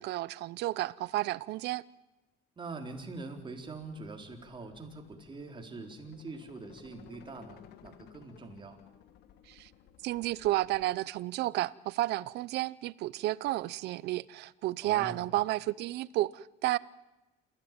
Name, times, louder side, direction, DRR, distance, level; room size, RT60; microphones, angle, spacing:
voice 1, 0.0-1.8 9.5-9.7 10.0-16.8, right 17 dB, 80° right, 0.7 m, -32 dB
voice 2, 2.6-8.8 14.8-15.2, right 3 dB, 30° right, 4.0 m, -44 dB
sound 1, 3.3-11.0, left 10 dB, 80° left, 1.6 m, -58 dB
28.0 x 15.5 x 9.0 m
cardioid pair, 110°, 17 cm